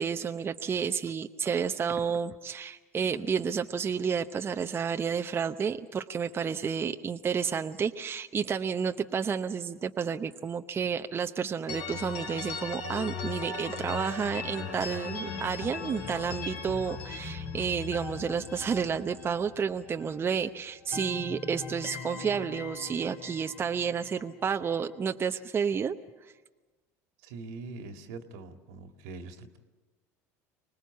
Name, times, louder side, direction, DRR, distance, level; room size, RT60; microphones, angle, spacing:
voice 1, 0.0-26.0, right 6 dB, 30° right, 6 dB, 0.8 m, -31 dB
sound 1, 11.7-20.4 20.7-24.8, left 5 dB, 70° left, 3.4 m, -39 dB
voice 2, 27.2-29.6, right 3 dB, 75° right, 6 dB, 2.0 m, -43 dB
25.0 x 19.5 x 8.3 m, 1.2 s
hypercardioid pair, 90°, 8 cm